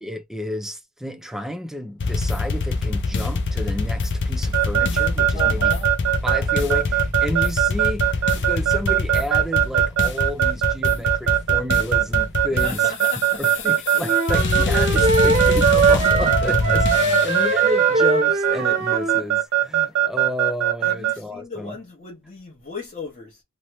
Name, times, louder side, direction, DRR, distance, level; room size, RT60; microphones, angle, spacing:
voice 1, 0.0-5.7 6.2-12.9 13.4-21.8, left 1 dB, ahead, 0.4 m, -31 dB
sound 1, 2.0-17.6, left 3 dB, 50° left, 0.5 m, -25 dB
Keyboard (musical) / Alarm, 4.5-21.1, right 14 dB, 85° right, 0.6 m, -20 dB
voice 2, 5.3-5.9 12.5-13.4 14.7-14.8 15.3-15.4 16.8-17.2 18.8-18.9 20.8-23.4, left 3 dB, 30° left, 0.9 m, -36 dB
sound 2, 14.0-19.2, right 3 dB, 30° right, 0.7 m, -22 dB
3.0 x 2.1 x 3.0 m
head